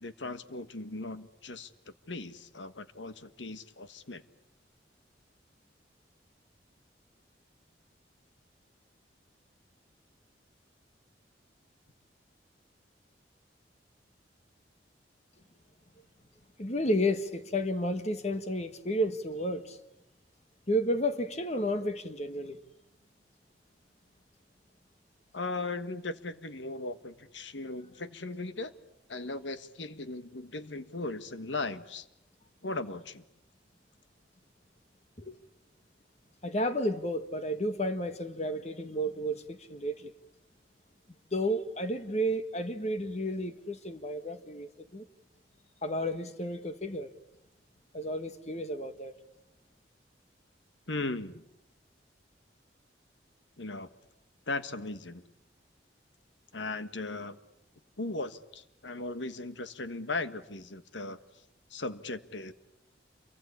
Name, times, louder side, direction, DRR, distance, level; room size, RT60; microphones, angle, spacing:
voice 1, 0.0-1.7 2.1-4.2 25.3-28.7 29.1-32.1 32.6-33.2 50.9-51.4 53.6-53.9 54.5-55.2 56.5-57.4 58.0-61.2 61.7-62.5, left 2 dB, 85° left, 1.5 m, -37 dB
voice 2, 16.6-19.8 20.7-22.6 35.2-35.4 36.4-40.1 41.3-45.1 45.8-47.1 47.9-49.1, equal, 35° left, 1.5 m, -32 dB
28.5 x 24.0 x 8.6 m
head